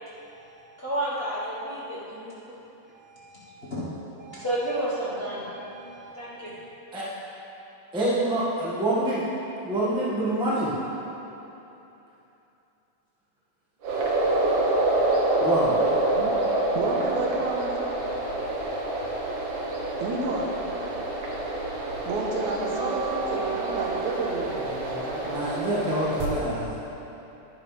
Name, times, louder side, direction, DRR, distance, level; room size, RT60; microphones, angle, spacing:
voice 1, 0.3-2.5 2.8-3.9 4.2-6.6, right 1 dB, 65° left, -9 dB, 0.6 m, -32 dB
voice 2, 7.9-9.2 9.6-10.7 15.4-15.7 25.3-26.9, right 1 dB, 5° right, -8 dB, 0.5 m, -26 dB
sound 1, 13.8-26.3, right 2 dB, 55° right, 1.5 m, -27 dB
voice 3, 16.8-17.9 20.0-20.5 22.1-25.5, right 2 dB, 80° right, 0 dB, 2.3 m, -31 dB
11.0 x 11.0 x 3.3 m, 3.0 s
omnidirectional pair, 3.4 m